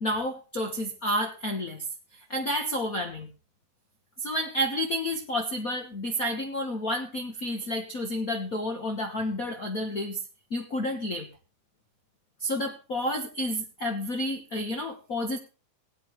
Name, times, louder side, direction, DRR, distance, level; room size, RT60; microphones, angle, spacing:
voice 1, 0.0-1.8 2.1-3.3 4.2-10.2 10.5-11.3 12.4-15.4, equal, 45° left, 3 dB, 1.1 m, -30 dB
18.0 x 10.5 x 3.2 m, 0.32 s
omnidirectional pair, 3.5 m